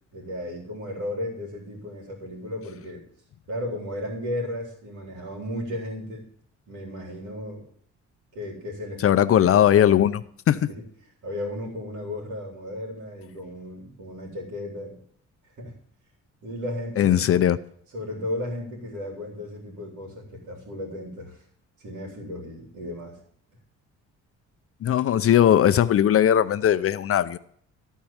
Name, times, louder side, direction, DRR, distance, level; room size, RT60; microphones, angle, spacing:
voice 1, 0.1-3.1 3.5-6.2 6.7-7.7 8.3-9.2 9.5-9.9 10.7-10.8 11.2-15.0 15.6-15.7 16.4-17.4 17.9-21.4 21.8-23.2, left 1 dB, 75° right, 3.2 m, -34 dB
voice 2, 9.0-10.2 10.5-10.7 17.0-17.6 24.8-27.4, left 10 dB, 50° left, 0.6 m, -19 dB
13.5 x 4.6 x 8.6 m
cardioid pair, 90°, 30 cm